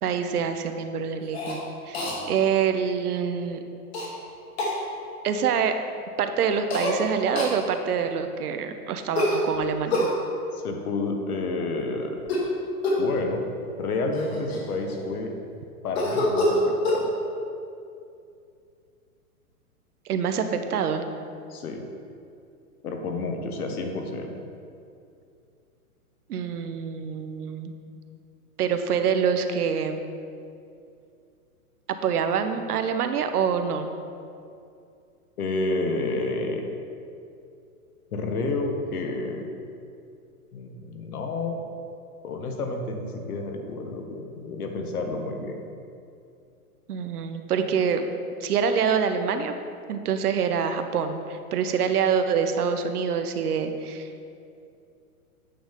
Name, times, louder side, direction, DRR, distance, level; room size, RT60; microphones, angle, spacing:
voice 1, 0.0-3.6 5.2-5.8 6.2-10.1 20.0-21.0 26.3-27.7 28.6-30.0 32.0-33.9 46.9-48.1 48.4-49.5 49.9-54.1, right 7 dB, 80° right, 8 dB, 0.8 m, -26 dB
Cough, 1.3-1.6 1.9-2.2 3.9-4.1 4.6-4.8 6.7-7.0 7.4-7.6 9.1-10.1 12.2-12.5 12.8-13.1 13.8-13.9 14.1-15.1 15.9-17.0, left 1 dB, 45° left, 1.4 m, -25 dB
voice 2, 10.5-12.1 13.0-13.4 13.8-15.3 15.8-17.1 21.5-21.8 22.8-24.4 35.4-36.6 38.1-39.4 40.5-41.6 42.2-45.6, left 3 dB, 75° left, 4 dB, 1.2 m, -30 dB
8.6 x 5.6 x 3.5 m, 2.5 s
hypercardioid pair, 165°, 45 cm